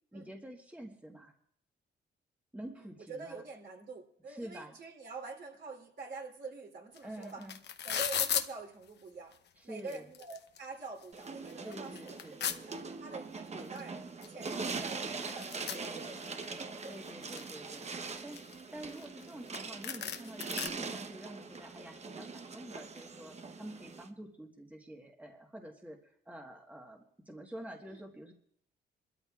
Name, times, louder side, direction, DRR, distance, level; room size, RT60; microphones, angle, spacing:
voice 1, 0.1-1.3 2.5-3.4 4.3-4.8 7.0-7.6 9.6-10.1 11.6-12.4 13.5-13.8 15.7-16.2 16.8-17.9 18.2-28.3, right 1 dB, 5° right, 1 dB, 1.4 m, -48 dB
voice 2, 2.8-7.4 7.8-9.3 9.6-12.2 12.7-16.2 16.5-17.0 27.9-28.0, right 3 dB, 55° right, 1 dB, 3.2 m, -46 dB
sound 1, 7.0-7.1 7.2-8.5 9.3-9.4 9.8-10.6 11.0-11.1 11.5-12.6 13.8-13.9 14.2-14.3 14.5-16.5 16.9-17.5 18.1-19.3 19.5-19.6 19.8-20.7, left 8 dB, 60° left, 0.9 m, -36 dB
sound 2, 11.1-24.1, right 4 dB, 35° right, 0.9 m, -42 dB
27.5 x 13.0 x 2.4 m, 0.67 s
cardioid pair, 90°, 20 cm